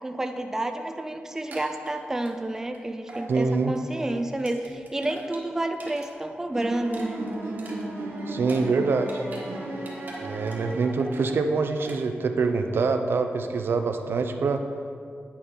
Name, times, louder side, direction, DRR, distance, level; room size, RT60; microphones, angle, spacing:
voice 1, 0.0-7.3, right 1 dB, 10° right, 6 dB, 0.4 m, -30 dB
sound 1, 1.3-2.8 3.1-3.3 3.6-6.1 6.4-9.5 9.7-10.7 11.0-11.4 11.8-12.0, right 2 dB, 50° right, 1.4 m, -44 dB
voice 2, 3.3-3.7 8.3-9.2 10.2-14.6, right 4 dB, 70° right, 6 dB, 0.5 m, -25 dB
sound 2, 6.5-11.4, right 2 dB, 90° right, 1.2 m, -35 dB
9.5 x 5.2 x 4.3 m, 2.3 s
wide cardioid pair, 135°, 4 cm